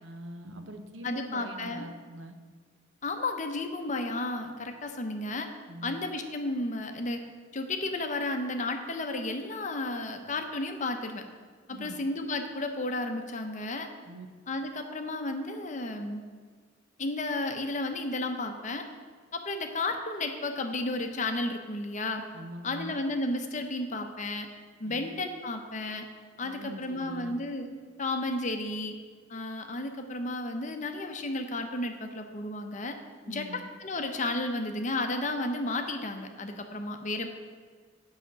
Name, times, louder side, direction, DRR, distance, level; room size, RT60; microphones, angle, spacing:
voice 1, 0.0-2.3 5.7-6.0 11.7-12.0 14.1-14.3 22.3-22.9 24.8-25.1 26.4-27.4 33.2-33.6, right 1 dB, 75° right, 7 dB, 0.9 m, -43 dB
voice 2, 1.0-1.9 3.0-5.5 5.8-7.3 7.5-11.2 11.7-13.9 14.5-16.2 17.0-18.8 19.3-22.2 22.6-24.5 24.8-26.1 26.4-29.0 29.3-33.0 33.3-37.3, left 2 dB, 40° left, 6 dB, 0.8 m, -33 dB
7.8 x 5.7 x 7.3 m, 1.5 s
head